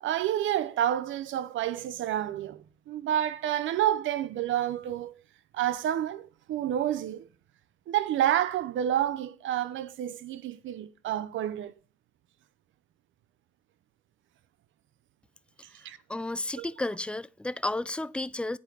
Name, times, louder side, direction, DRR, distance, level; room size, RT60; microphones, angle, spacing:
voice 1, 0.0-5.1 5.5-7.3 7.9-11.7 15.8-16.0 16.6-16.7, right 11 dB, 75° right, 0.7 m, -29 dB
voice 2, 16.1-18.6, left 2 dB, 5° left, 0.3 m, -32 dB
8.5 x 4.5 x 6.9 m
cardioid pair, 90°, 20 cm